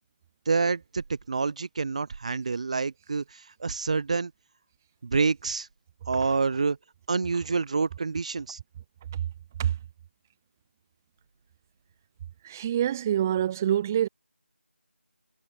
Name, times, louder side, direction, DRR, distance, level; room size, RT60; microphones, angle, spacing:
voice 1, 0.5-4.3 5.0-5.7 6.1-6.8 7.1-8.6, right 4 dB, 30° right, 4.3 m, -27 dB
voice 2, 12.4-14.1, right 10 dB, 15° right, 3.1 m, -26 dB
figure-of-eight pair, 165°, 7 cm